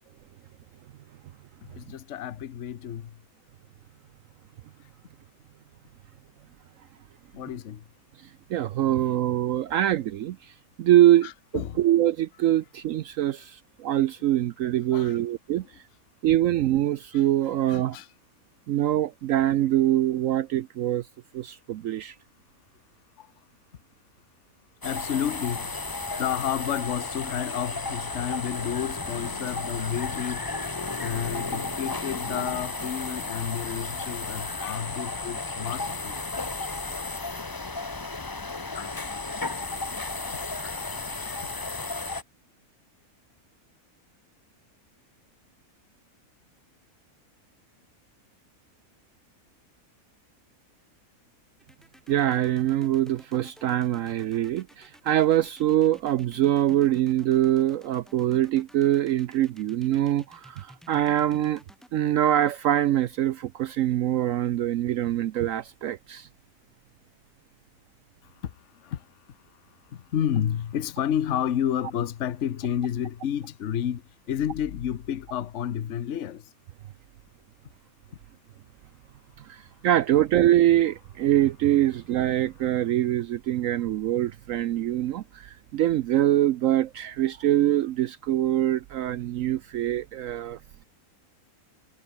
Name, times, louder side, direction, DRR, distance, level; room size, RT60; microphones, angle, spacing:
voice 1, 1.7-3.1 7.3-7.8 11.2-11.8 14.9-15.2 17.1-17.2 17.7-18.1 23.2-23.3 24.8-25.7 26.2-30.4 31.0-36.1 38.7-39.1 40.6-40.8 41.1-41.7 68.4-68.5 68.8-69.0 69.9-74.0 74.3-76.4, left 9 dB, 55° left, 1.2 m, -31 dB
voice 2, 8.2-15.8 16.2-18.0 18.7-21.1 21.3-22.2 52.1-61.6 61.9-66.3 79.4-90.8, right 12 dB, 70° right, 0.9 m, -24 dB
sound 1, 24.8-42.2, left 3 dB, 20° left, 0.7 m, -33 dB
sound 2, 51.6-61.9, equal, ahead, 1.8 m, -52 dB
omnidirectional pair, 1.6 m